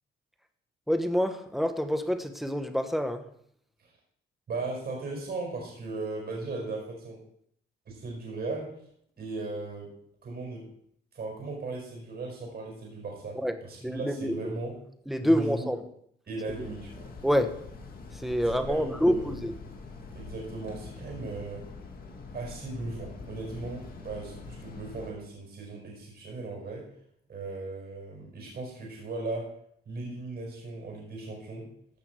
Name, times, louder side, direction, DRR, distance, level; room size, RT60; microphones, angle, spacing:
voice 1, 0.9-3.2 13.4-13.5 13.8-14.4 15.1-15.8 17.2-17.5 18.2-19.5, equal, ahead, 8 dB, 1.1 m, -27 dB
voice 2, 4.5-7.2 7.9-8.7 9.2-9.9 10.2-10.7 11.1-14.7 15.2-15.7 16.3-17.1 18.4-19.3 20.1-21.6 22.3-26.9 27.3-29.5 29.8-31.7, right 3 dB, 55° right, -1 dB, 5.1 m, -37 dB
sound 1, 16.5-25.1, left 3 dB, 45° left, 2.2 m, -44 dB
15.5 x 5.9 x 4.7 m, 0.69 s
cardioid pair, 90°, 20 cm